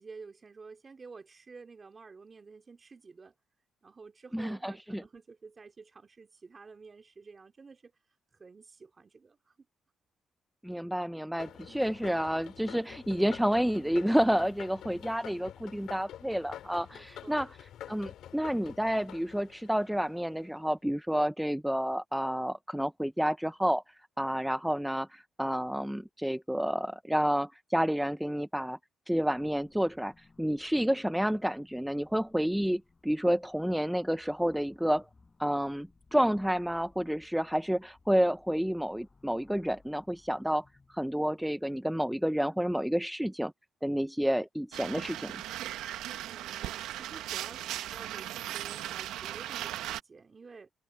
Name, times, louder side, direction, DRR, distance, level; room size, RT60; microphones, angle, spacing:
voice 1, 0.0-3.3 3.8-7.9 8.3-9.7 11.7-11.9 16.9-17.5 46.3-50.7, right 4 dB, 35° right, 2.6 m, -51 dB
voice 2, 4.3-5.0 10.6-17.5 17.9-28.8 29.1-35.1 35.4-40.6 40.9-43.5 43.8-45.3, equal, 5° right, 0.4 m, -30 dB
sound 1, 11.4-20.5, left 11 dB, 80° left, 2.6 m, -48 dB
sound 2, 29.1-42.2, left 3 dB, 25° left, 7.1 m, -63 dB
sound 3, 44.7-50.0, right 13 dB, 90° right, 0.8 m, -38 dB
cardioid pair, 90°, 0 cm